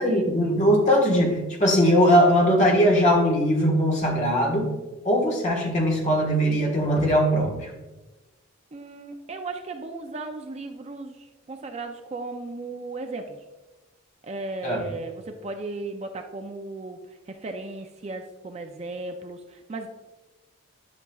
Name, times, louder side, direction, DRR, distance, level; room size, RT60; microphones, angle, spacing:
voice 1, 0.0-4.7 5.0-7.7 14.6-14.8, equal, 35° left, 0 dB, 1.4 m, -20 dB
voice 2, 8.7-13.4 14.2-17.0 17.3-19.9, right 3 dB, 30° right, 5 dB, 0.4 m, -36 dB
10.5 x 6.0 x 2.3 m, 1.1 s
head